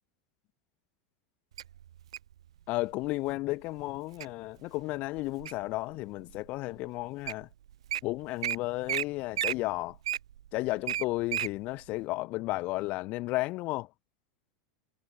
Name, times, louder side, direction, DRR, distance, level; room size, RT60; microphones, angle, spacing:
Wild animals, 1.6-2.3 3.0-3.3 3.8-4.3 4.8-5.7 6.3-6.4 7.0-7.1 7.3-7.4 7.7-8.0 8.4-8.6 8.9-9.0 9.3-11.5 12.0-12.1, right 11 dB, 80° right, 1.7 m, -32 dB
voice 1, 2.7-7.5 8.0-10.0 10.5-13.9, left 20 dB, 50° left, 5.5 m, -33 dB
hypercardioid pair, 95°, 3 cm